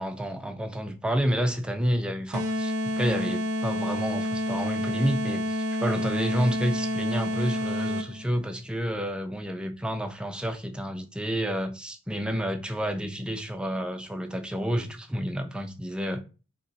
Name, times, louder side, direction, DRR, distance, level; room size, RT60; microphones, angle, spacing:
voice 1, 0.0-16.2, equal, 5° right, 0.3 m, -29 dB
sound 1, 2.3-8.3, left 1 dB, 80° right, 0.5 m, -29 dB
3.4 x 2.8 x 4.0 m
head